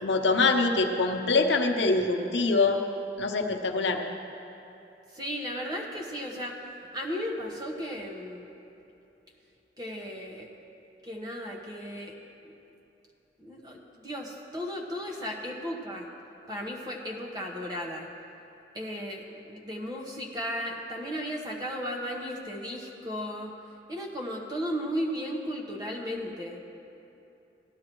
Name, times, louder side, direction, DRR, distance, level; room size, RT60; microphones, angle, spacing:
voice 1, 0.0-2.8 3.2-4.0, left 3 dB, 85° left, 3 dB, 0.8 m, -24 dB
voice 2, 5.1-6.6 6.9-8.5 9.8-10.5 11.0-12.1 12.4-12.5 13.4-16.1 16.5-18.1 18.7-23.5 23.9-26.6, equal, 25° right, -1 dB, 1.2 m, -35 dB
17.5 x 11.5 x 3.1 m, 2.8 s
head